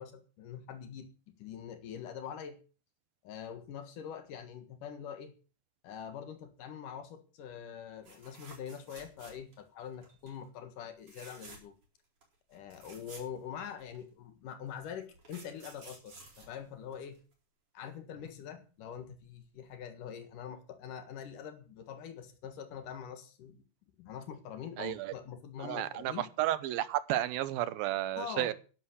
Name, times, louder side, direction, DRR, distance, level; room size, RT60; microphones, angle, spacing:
voice 1, 0.0-2.6 3.2-5.3 5.8-11.8 12.5-17.2 17.7-23.7 24.0-26.2 28.2-28.5, left 8 dB, 70° left, 9 dB, 3.0 m, -44 dB
sound 1, 8.0-9.7 10.0-10.4 11.0-11.8 12.2-12.3 12.5-14.0 14.8-17.3 19.2-19.4 19.7-19.8, right 3 dB, 40° right, 5.3 m, -53 dB
voice 2, 24.8-25.1 25.6-28.5, right 14 dB, 85° right, 15 dB, 2.8 m, -32 dB
11.0 x 11.0 x 6.4 m, 0.37 s
omnidirectional pair, 4.1 m